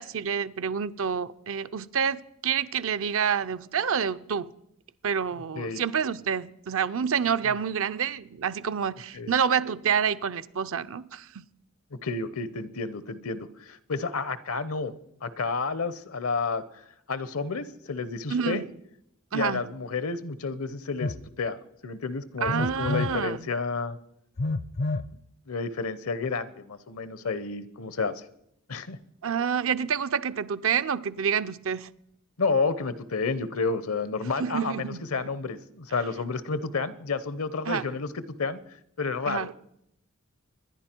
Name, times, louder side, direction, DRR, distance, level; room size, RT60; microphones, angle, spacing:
voice 1, 0.0-4.5 5.0-11.3 18.3-18.7 19.3-19.6 22.4-23.5 29.2-31.9 34.4-35.0 37.7-37.8 39.3-39.5, right 7 dB, 70° right, 0.6 m, -28 dB
voice 2, 12.0-14.9 15.2-16.8 17.1-18.6 19.3-21.6 21.8-24.0 25.5-28.2 28.7-29.0 32.4-38.6 39.0-39.5, left 4 dB, 70° left, 0.8 m, -30 dB
Telephone, 21.0-21.2 22.5-23.2 24.4-25.1, left 2 dB, 50° left, 0.5 m, -29 dB
25.5 x 10.5 x 4.5 m
head